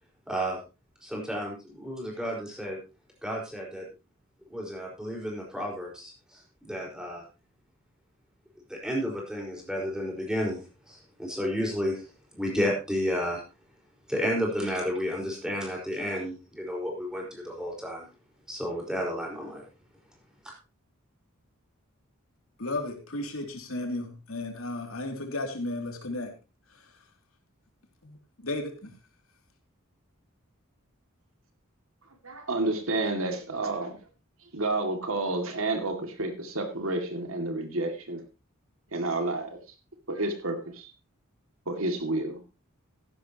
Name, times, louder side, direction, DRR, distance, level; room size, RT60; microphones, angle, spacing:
voice 1, 0.3-0.6 1.0-2.8 3.2-3.9 4.5-7.2 8.7-10.6 10.9-12.0 12.3-13.4 14.1-18.1 18.5-19.6 20.4-20.5, equal, 5° right, -1 dB, 4.7 m, -32 dB
voice 2, 22.6-26.3 26.7-27.0 28.0-29.0, left 2 dB, 90° left, 4 dB, 2.8 m, -34 dB
voice 3, 32.2-34.0 34.5-38.2 38.9-39.6 40.1-40.9 41.7-42.4, right 2 dB, 80° right, 5 dB, 2.4 m, -30 dB
15.0 x 11.5 x 3.0 m, 0.29 s
head